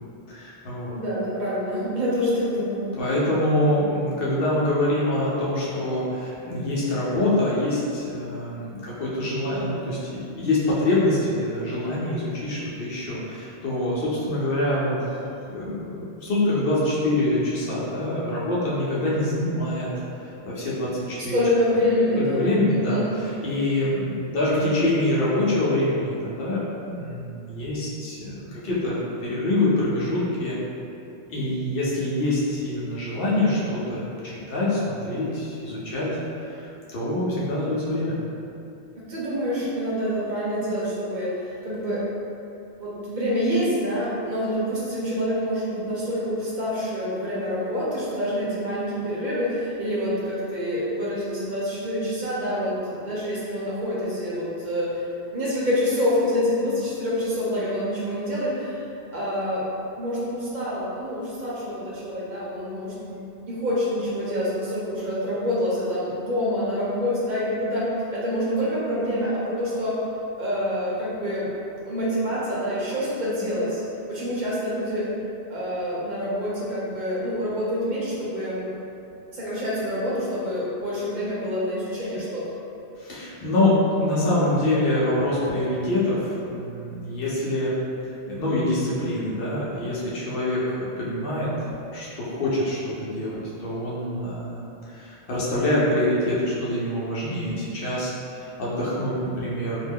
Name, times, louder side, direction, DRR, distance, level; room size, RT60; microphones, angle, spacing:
voice 1, 0.3-0.9 3.0-15.0 15.5-19.9 20.4-21.4 22.1-30.6 31.3-36.1 36.5-36.7 36.9-38.2 83.0-87.7 88.0-91.5 91.9-94.7 94.9-99.9, left 1 dB, 60° left, -7 dB, 0.8 m, -25 dB
voice 2, 0.9-2.9 21.3-23.1 39.1-41.3 41.6-42.0 42.8-58.8 59.1-59.7 60.0-69.9 70.4-71.5 71.8-73.8 74.1-75.1 75.5-78.7 79.3-82.6, equal, 50° right, -8 dB, 0.8 m, -26 dB
2.4 x 2.2 x 3.4 m, 2.7 s
omnidirectional pair, 1.1 m